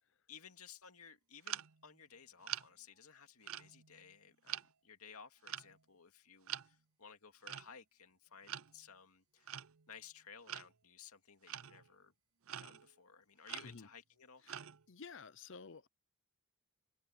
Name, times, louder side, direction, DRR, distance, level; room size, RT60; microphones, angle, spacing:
voice 1, 0.3-9.5 9.9-12.1 12.6-14.4, left 7 dB, 85° left, 2.4 m, -57 dB
sound 1, 1.5-1.9 2.4-2.7 3.4-4.1 4.5-4.7 5.5-5.8 6.5-6.7 7.4-7.7 8.4-8.8 9.5-9.9 10.5-10.7 11.5-11.9 12.5-12.9 13.5-13.9 14.5-14.8, right 12 dB, 70° right, 0.7 m, -45 dB
voice 2, 14.9-15.9, left 5 dB, 55° left, 0.8 m, -52 dB
open air
head